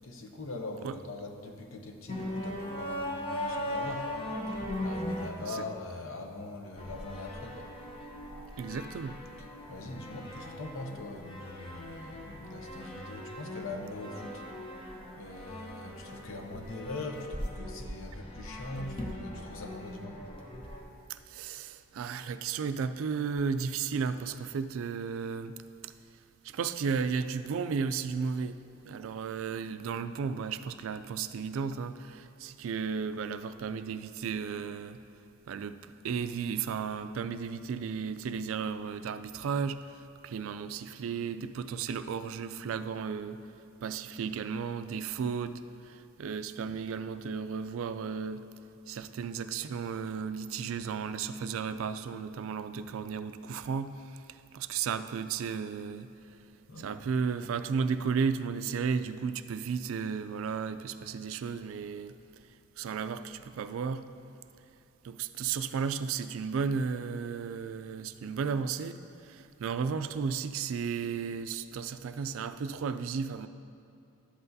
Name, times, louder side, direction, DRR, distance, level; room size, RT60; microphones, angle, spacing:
voice 1, 0.0-4.1 4.5-7.7 9.7-14.8 15.2-20.2 56.7-57.0, left 2 dB, 70° left, 4 dB, 0.7 m, -42 dB
sound 1, 2.1-5.3 6.8-20.8, left 1 dB, 25° left, 0.8 m, -39 dB
voice 2, 8.6-9.2 21.1-25.5 25.8-25.9 26.4-35.0 35.5-43.4 43.8-48.5 48.9-56.1 56.8-62.2 62.8-64.1 65.0-73.5, right 6 dB, 70° right, 11 dB, 0.3 m, -34 dB
11.5 x 7.9 x 2.7 m, 2.6 s
head